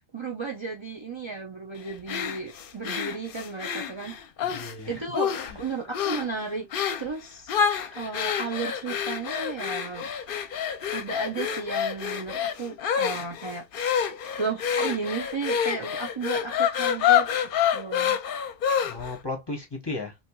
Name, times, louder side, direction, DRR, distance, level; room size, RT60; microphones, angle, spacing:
voice 1, 0.1-4.2 4.9-6.7 7.0-10.1 10.9-14.0 14.4-17.3 17.7-18.2, right 4 dB, 35° right, 0.5 m, -34 dB
sound 1, 2.1-4.7 5.1-5.6 5.9-6.3 6.7-7.1 7.5-19.2, left 8 dB, 65° left, 0.7 m, -27 dB
voice 2, 4.4-5.0 5.4-5.6 18.8-20.2, left 3 dB, 25° left, 0.7 m, -35 dB
4.3 x 2.9 x 2.2 m
omnidirectional pair, 1.0 m